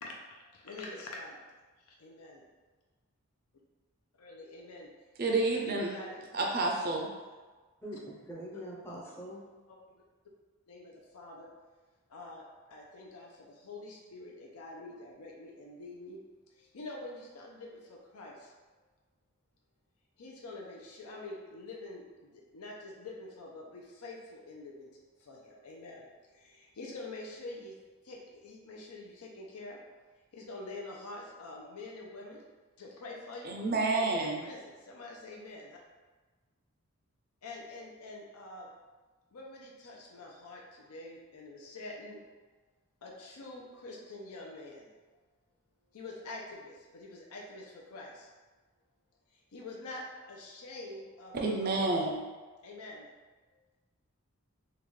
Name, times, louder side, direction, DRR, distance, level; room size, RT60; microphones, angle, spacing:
voice 1, 0.4-1.4 2.0-2.4 4.2-4.9 5.2-6.3 8.5-8.6 9.9-10.0 10.7-11.5 12.1-16.2 16.5-18.5 20.2-24.9 25.2-27.8 28.0-29.8 30.3-32.4 32.8-33.5 34.0-35.8 37.4-38.7 39.3-42.2 43.0-44.9 45.9-48.3 49.3-51.9 52.6-53.1 53.5-53.6, left 2 dB, 85° left, -1 dB, 0.5 m, -46 dB
voice 2, 5.2-6.0 6.3-7.1 33.4-34.4 51.3-52.2, right 3 dB, 40° right, 0 dB, 0.4 m, -29 dB
voice 3, 7.8-9.4, equal, 10° left, -4 dB, 0.5 m, -43 dB
3.8 x 2.2 x 3.1 m, 1.3 s
head